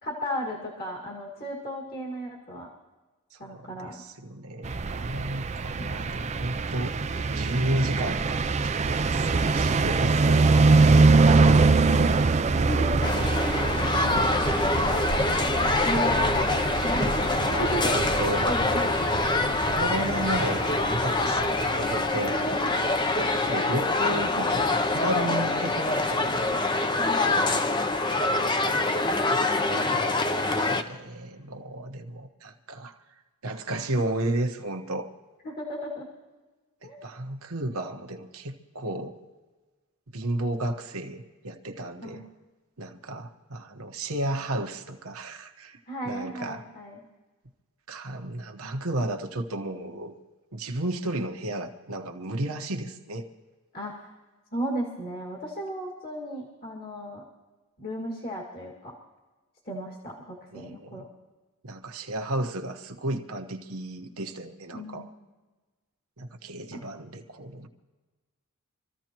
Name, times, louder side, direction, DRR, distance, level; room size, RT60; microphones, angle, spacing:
voice 1, 0.0-2.7 3.4-4.0 5.8-6.0 12.5-13.1 14.0-14.5 15.8-18.0 18.4-19.3 22.1-22.8 27.0-27.6 35.4-36.1 36.8-37.0 42.0-42.2 45.9-47.0 53.7-54.1 54.5-57.2 57.8-58.9 59.7-61.1 64.7-65.1 66.7-66.8, equal, 45° left, -2 dB, 2.1 m, -35 dB
voice 2, 3.3-10.8 15.3-16.5 17.4-18.5 19.7-22.4 23.1-26.5 29.3-33.0 33.4-35.1 36.8-39.2 40.1-42.2 42.8-45.8 46.0-46.7 47.9-50.2 50.5-53.3 60.5-61.1 61.6-65.0 66.2-67.7, right 1 dB, 70° right, 5 dB, 1.1 m, -33 dB
sound 1, 4.6-22.6, right 3 dB, 30° right, 0.4 m, -24 dB
sound 2, 13.0-30.8, left 2 dB, 20° left, 0.6 m, -25 dB
25.5 x 14.5 x 3.0 m, 1.3 s
head